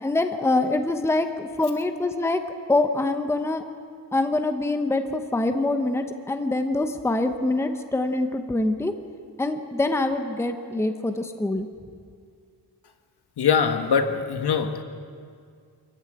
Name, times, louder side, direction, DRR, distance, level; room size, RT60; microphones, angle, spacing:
voice 1, 0.0-2.4 2.7-3.6 4.1-8.9 9.4-11.7, left 2 dB, 5° left, 7 dB, 0.9 m, -24 dB
voice 2, 13.4-14.8, left 6 dB, 65° left, 7 dB, 1.7 m, -22 dB
24.5 x 14.5 x 9.2 m, 2.2 s
wide cardioid pair, 160°, 42 cm